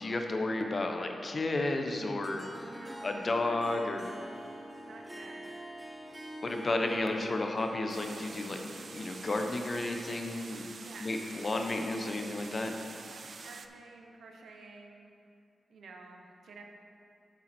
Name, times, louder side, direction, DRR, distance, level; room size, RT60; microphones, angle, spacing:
voice 1, 0.0-2.7 3.0-4.1 6.4-8.6 8.9-10.7 11.0-12.7, left 2 dB, 45° left, 4 dB, 0.8 m, -32 dB
Harp, 2.2-10.7, equal, 10° right, 1.0 m, -46 dB
voice 2, 2.7-3.9 4.9-5.4 10.8-11.1 13.1-15.1 15.7-16.6, right 3 dB, 85° right, 2 dB, 0.9 m, -51 dB
sound 1, 7.9-13.7, right 4 dB, 60° right, 0.4 m, -47 dB
7.5 x 7.0 x 4.3 m, 2.4 s
cardioid pair, 70°, 0 cm